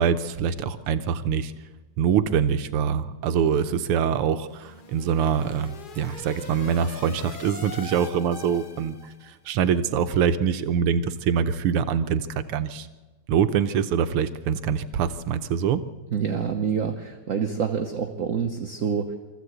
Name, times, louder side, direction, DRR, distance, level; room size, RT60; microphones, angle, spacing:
voice 1, 0.0-1.5 2.0-9.0 9.2-12.9 13.3-15.8, right 7 dB, 85° right, 11 dB, 1.8 m, -24 dB
sound 1, 4.3-9.3, left 4 dB, 60° left, 0.5 m, -42 dB
voice 2, 16.1-19.2, right 6 dB, 50° right, 5 dB, 1.1 m, -27 dB
24.0 x 14.5 x 8.0 m, 1.2 s
omnidirectional pair, 2.4 m